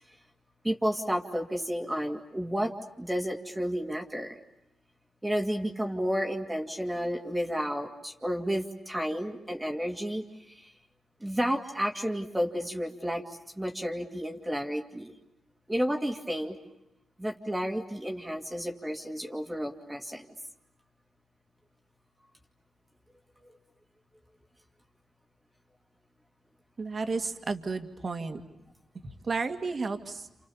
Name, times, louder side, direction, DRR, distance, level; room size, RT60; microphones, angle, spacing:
voice 1, 0.6-2.7 3.0-4.4 5.2-10.6 11.2-13.2 13.6-15.1 15.7-16.6 17.2-20.3, equal, 10° right, 2 dB, 2.3 m, -31 dB
voice 2, 26.8-28.4 29.2-30.3, right 4 dB, 50° right, 7 dB, 2.2 m, -32 dB
29.5 x 27.5 x 7.1 m, 0.91 s
cardioid pair, 60°, 0 cm